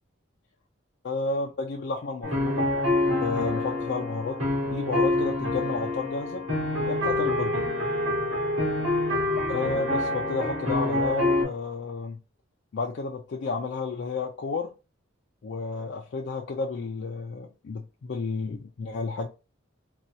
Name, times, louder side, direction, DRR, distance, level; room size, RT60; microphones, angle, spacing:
voice 1, 1.0-2.7 3.2-4.4 4.7-6.5 6.9-7.6 9.5-12.2 12.7-14.7 15.4-19.3, left 4 dB, 55° left, 2 dB, 0.4 m, -31 dB
sound 1, 2.2-11.4, left 1 dB, 75° right, 2.0 m, -26 dB
4.1 x 2.3 x 2.6 m, 0.31 s
head